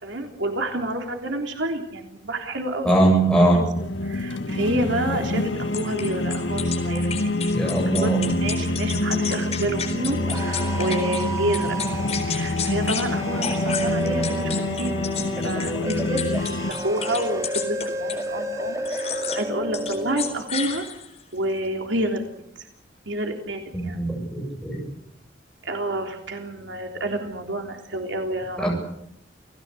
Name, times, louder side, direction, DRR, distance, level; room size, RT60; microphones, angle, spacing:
voice 1, 0.0-3.7 4.0-7.3 7.9-11.8 12.3-15.1 15.4-16.2 16.7-20.8 21.3-22.2 22.6-22.7 23.1-24.0 25.6-28.7, right 1 dB, 90° right, 4 dB, 3.4 m, -29 dB
voice 2, 2.8-3.6 7.5-8.2 23.9-24.8 28.6-28.7, right 1 dB, 5° left, -1 dB, 7.9 m, -20 dB
sound 1, 3.8-16.7, left 2 dB, 90° left, 1.7 m, -27 dB
sound 2, 5.7-11.2 11.5-13.1 13.4-18.3 18.8-19.4 19.7-21.2, left 7 dB, 35° left, 4.2 m, -32 dB
sound 3, 9.9-20.3, equal, 15° right, 2.6 m, -31 dB
28.5 x 17.5 x 8.3 m, 0.78 s
head